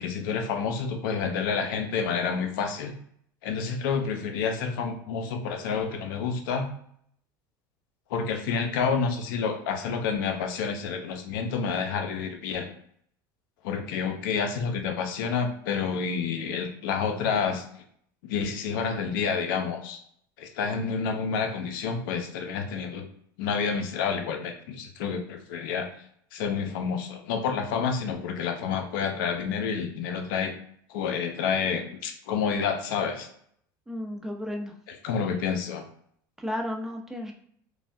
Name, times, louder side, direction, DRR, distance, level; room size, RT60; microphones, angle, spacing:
voice 1, 0.0-2.9 3.4-6.7 8.1-12.7 13.6-17.6 18.3-20.0 20.4-23.1 23.4-25.9 26.3-30.6 30.9-33.3 34.9-35.8, left 6 dB, 85° left, 5 dB, 0.5 m, -29 dB
voice 2, 33.9-34.7 36.4-37.3, left 1 dB, 5° right, 1 dB, 0.6 m, -33 dB
3.1 x 2.2 x 2.6 m, 0.66 s
supercardioid pair, 110°, 11 cm